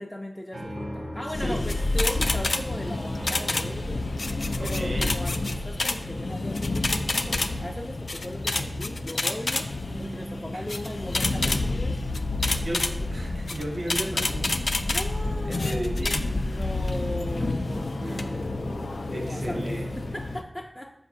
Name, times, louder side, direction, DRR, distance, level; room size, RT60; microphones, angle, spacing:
voice 1, 0.0-12.7 14.9-16.0 16.3-19.7 20.0-20.9, left 1 dB, 15° left, 1 dB, 0.4 m, -38 dB
sound 1, 0.5-13.1 16.1-20.2, right 1 dB, 80° right, 0.5 m, -41 dB
sound 2, 0.7-15.6, left 1 dB, 45° left, 0.7 m, -50 dB
sound 3, 1.3-20.4, left 2 dB, 80° left, 0.3 m, -28 dB
voice 2, 4.6-5.2 10.5-10.6 12.5-14.7 14.9-15.0 15.5-16.5 18.0-18.5 19.1-20.2, right 1 dB, 60° right, 1 dB, 0.9 m, -35 dB
7.2 x 2.6 x 5.1 m, 0.82 s
wide cardioid pair, 70°, 0 cm